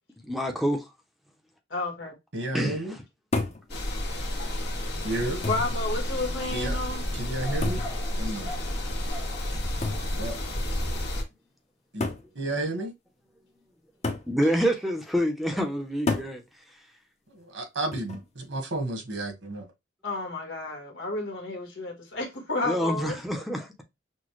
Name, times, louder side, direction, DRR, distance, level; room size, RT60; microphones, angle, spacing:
voice 1, 0.2-0.8 2.5-3.0 14.3-16.4 22.6-23.8, equal, ahead, 0.7 m, -27 dB
voice 2, 1.7-2.1 5.4-7.0 20.0-23.2, left 2 dB, 85° left, 1.4 m, -31 dB
voice 3, 2.3-2.9 5.0-5.4 6.5-6.7 7.2-7.8 8.2-8.5 10.1-10.4 11.9-12.1 12.3-12.9 17.5-19.6, right 2 dB, 80° right, 1.5 m, -31 dB
sound 1, 3.3-3.7 4.7-4.8 5.4-5.8 7.6-8.0 9.8-10.1 11.2-11.3 12.0-12.3 14.0-14.3 16.1-16.4 17.9-18.3, left 2 dB, 35° left, 0.8 m, -30 dB
sound 2, 3.7-11.2, left 1 dB, 60° left, 1.8 m, -31 dB
6.1 x 2.2 x 3.1 m
head